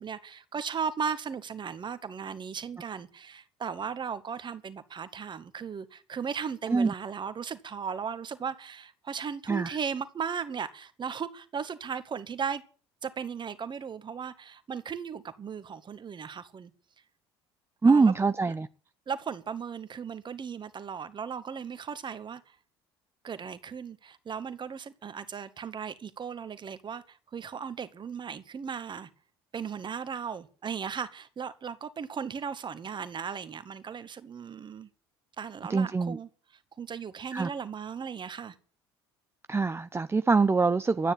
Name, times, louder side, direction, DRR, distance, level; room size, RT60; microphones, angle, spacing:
voice 1, 0.0-12.6 13.0-16.7 17.8-18.1 19.1-22.6 23.2-29.1 29.5-34.9 35.4-36.3 36.8-38.6, right 6 dB, 35° right, 1.9 m, -36 dB
voice 2, 9.5-9.8 17.8-18.7 35.7-36.2 37.3-37.5 39.5-41.1, right 4 dB, 20° right, 0.7 m, -24 dB
13.0 x 9.9 x 8.7 m
figure-of-eight pair, 60°, 14 cm